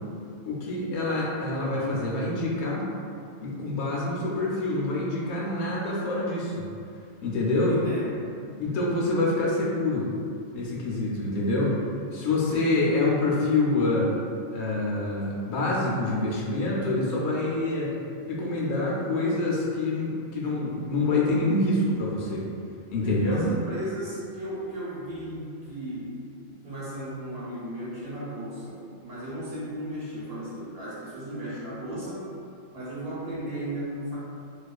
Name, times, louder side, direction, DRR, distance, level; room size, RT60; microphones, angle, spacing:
voice 1, 0.4-2.9 3.4-6.7 7.2-7.8 8.6-10.1 10.5-11.8 12.1-14.1 14.5-17.9 18.3-22.5 22.9-23.4, left 2 dB, 75° left, -4 dB, 0.8 m, -26 dB
voice 2, 7.7-8.2 23.0-26.2 26.5-32.3 32.7-34.2, right 1 dB, 60° right, -9 dB, 1.0 m, -35 dB
2.4 x 2.4 x 2.3 m, 2.4 s
omnidirectional pair, 1.2 m